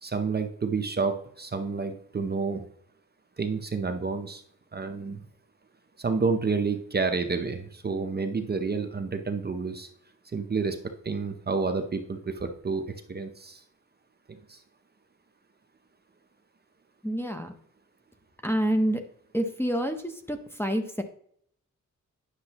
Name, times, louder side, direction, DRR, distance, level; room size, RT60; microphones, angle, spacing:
voice 1, 0.0-2.6 3.4-4.4 4.7-5.2 6.0-9.9 10.3-10.8 11.0-12.8 13.1-13.6 14.5-14.6, right 4 dB, 30° right, 6 dB, 0.7 m, -29 dB
voice 2, 17.0-17.5 18.4-19.0 19.3-21.0, equal, 5° left, 5 dB, 0.7 m, -27 dB
9.8 x 6.6 x 2.9 m, 0.64 s
wide cardioid pair, 155°, 31 cm